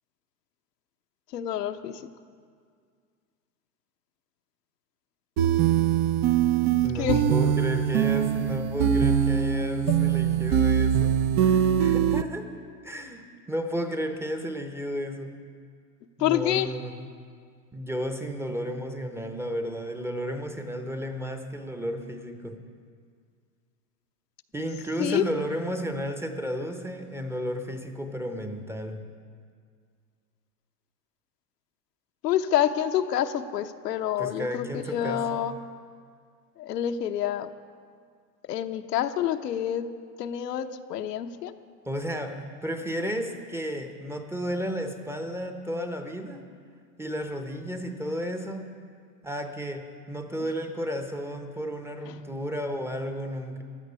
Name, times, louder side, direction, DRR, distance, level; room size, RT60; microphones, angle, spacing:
voice 1, 1.3-2.0 6.9-7.3 16.2-16.7 25.0-25.3 32.2-35.5 36.6-37.5 38.5-39.9 40.2-41.5, left 10 dB, 80° left, 7 dB, 1.0 m, -27 dB
sound 1, 5.4-12.2, right 9 dB, 30° right, 0.4 m, -23 dB
voice 2, 6.8-12.5 12.8-15.4 16.2-17.0 17.7-22.6 24.5-29.1 34.2-35.3 41.8-46.5 47.0-48.7 49.2-53.6, equal, 5° right, 6 dB, 0.7 m, -33 dB
15.5 x 12.0 x 5.5 m, 2.1 s
hypercardioid pair, 120°, 48 cm